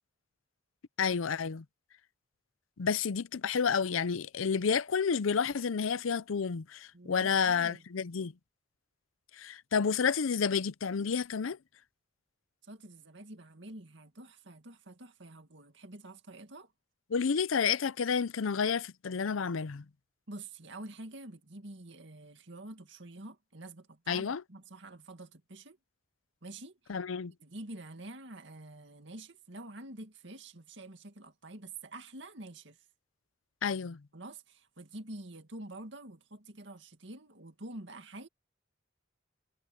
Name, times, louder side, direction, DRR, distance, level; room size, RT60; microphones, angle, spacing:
voice 1, 1.0-1.6 2.8-8.3 9.4-11.6 17.1-19.8 24.1-24.4 26.9-27.3 33.6-34.0, left 6 dB, 90° left, 0.6 m, -30 dB
voice 2, 6.9-7.8 12.6-16.7 20.3-25.8 26.4-27.0 27.4-32.8 34.1-38.3, right 2 dB, 65° right, 2.2 m, -47 dB
head